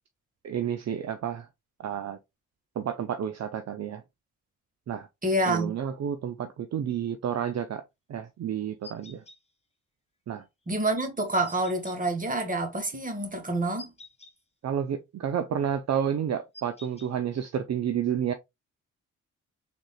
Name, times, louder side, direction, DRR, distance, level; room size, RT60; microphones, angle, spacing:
voice 1, 0.4-1.5 1.8-2.2 2.8-4.0 4.9-5.1 5.5-7.8 8.1-9.2 10.3-10.4 14.6-18.3, right 9 dB, 55° right, 0.6 m, -30 dB
voice 2, 5.2-5.7 10.7-13.9, right 2 dB, 25° right, 1.5 m, -27 dB
sound 1, 8.8-9.4 11.5-12.0 13.8-14.3 16.5-17.1, left 2 dB, 20° left, 1.1 m, -47 dB
3.7 x 3.6 x 2.3 m
cardioid pair, 60°, 32 cm